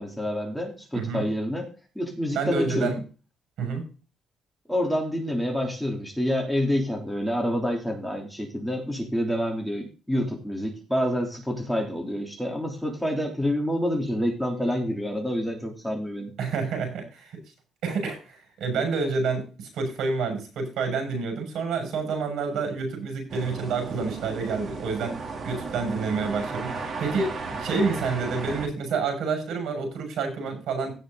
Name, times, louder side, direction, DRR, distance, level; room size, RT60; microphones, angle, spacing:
voice 1, 0.0-1.7 1.9-2.9 4.7-16.3, equal, ahead, 0 dB, 3.4 m, -28 dB
voice 2, 0.9-1.3 2.3-3.0 3.6-3.8 16.4-17.4 17.8-30.9, right 4 dB, 80° right, 6 dB, 6.7 m, -28 dB
sound 1, 23.3-28.7, right 4 dB, 40° right, 3.2 m, -34 dB
17.0 x 6.5 x 4.0 m, 0.33 s
cardioid pair, 155°, 0 cm